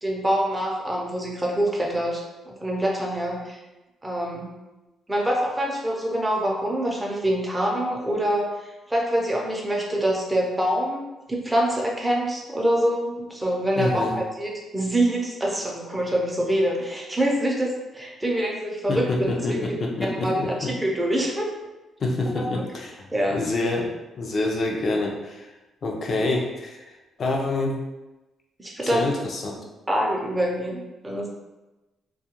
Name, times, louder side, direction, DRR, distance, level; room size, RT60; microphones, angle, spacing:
voice 1, 0.0-3.6 4.0-4.5 5.1-19.7 20.0-21.5 22.4-22.6 23.1-23.4 28.6-29.1 29.9-31.3, right 1 dB, 15° right, -2 dB, 0.6 m, -25 dB
voice 2, 13.8-14.2 18.9-20.7 22.0-25.5 25.8-26.8 27.2-27.7 28.9-29.6, left 2 dB, 50° left, 0 dB, 0.5 m, -27 dB
2.3 x 2.2 x 2.9 m, 1.1 s
cardioid pair, 90°, 0 cm